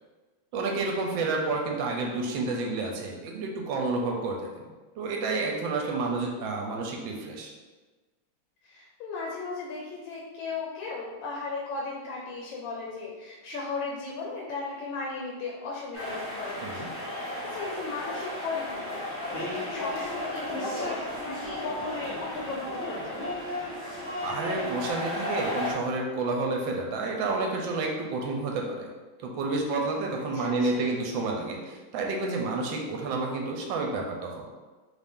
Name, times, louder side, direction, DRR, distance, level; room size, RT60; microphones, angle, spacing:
voice 1, 0.5-4.7 5.0-7.5 16.6-16.9 24.2-28.9 29.2-34.4, right 3 dB, 75° right, 1 dB, 1.2 m, -30 dB
voice 2, 8.6-23.3 30.3-30.9, left 3 dB, 75° left, -2 dB, 1.4 m, -36 dB
sound 1, 15.9-25.7, left 1 dB, 20° left, 0.4 m, -34 dB
4.0 x 2.5 x 3.5 m, 1.3 s
omnidirectional pair, 2.3 m